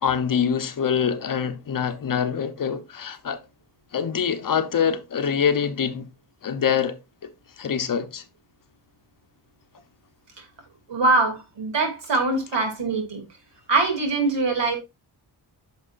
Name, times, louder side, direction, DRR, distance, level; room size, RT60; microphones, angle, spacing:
voice 1, 0.0-3.4 3.9-6.1 6.4-7.0 7.6-8.2, left 7 dB, 50° left, 0.9 m, -24 dB
voice 2, 10.9-13.2 13.7-14.8, right 3 dB, 85° right, 2.7 m, -23 dB
9.4 x 6.1 x 2.5 m
wide cardioid pair, 160°, 42 cm